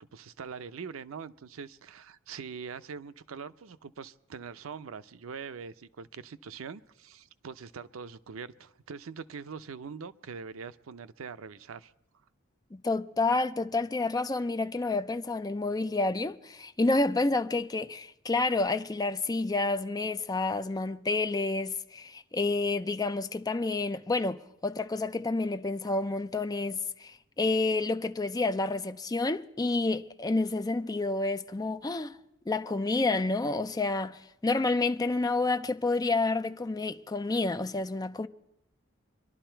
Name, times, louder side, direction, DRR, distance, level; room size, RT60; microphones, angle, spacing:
voice 1, 0.1-11.9, right 5 dB, 85° right, 0.5 m, -43 dB
voice 2, 12.7-32.2 32.5-38.3, left 3 dB, 20° left, 0.5 m, -29 dB
25.0 x 11.5 x 4.4 m
head